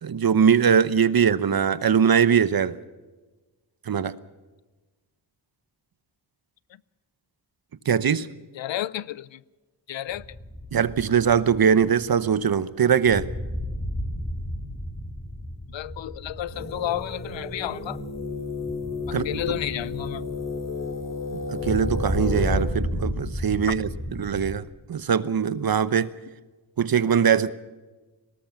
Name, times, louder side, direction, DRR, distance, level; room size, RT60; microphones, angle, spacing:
voice 1, 0.0-2.8 3.9-4.1 7.9-8.3 10.7-13.3 19.1-19.3 21.5-23.9 24.2-24.6 24.9-26.1 26.8-27.5, right 7 dB, 55° right, 1.0 m, -21 dB
voice 2, 8.5-9.4 9.9-10.3 15.7-18.0 19.1-20.4, left 12 dB, 85° left, 0.7 m, -32 dB
sound 1, 10.1-24.6, equal, 15° left, 2.5 m, -33 dB
sound 2, 16.5-22.6, left 3 dB, 35° left, 3.0 m, -33 dB
20.5 x 18.0 x 7.1 m
cardioid pair, 80°, 43 cm